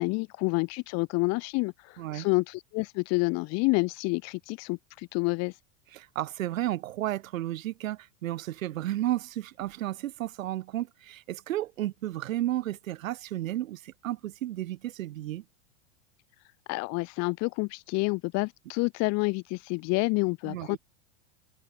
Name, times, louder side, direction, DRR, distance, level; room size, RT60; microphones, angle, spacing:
voice 1, 0.0-5.5 16.7-20.8, left 27 dB, 40° left, 1.3 m, -28 dB
voice 2, 2.0-2.3 5.9-15.4 20.5-20.8, right 14 dB, 85° right, 6.8 m, -33 dB
supercardioid pair, 150°, 39 cm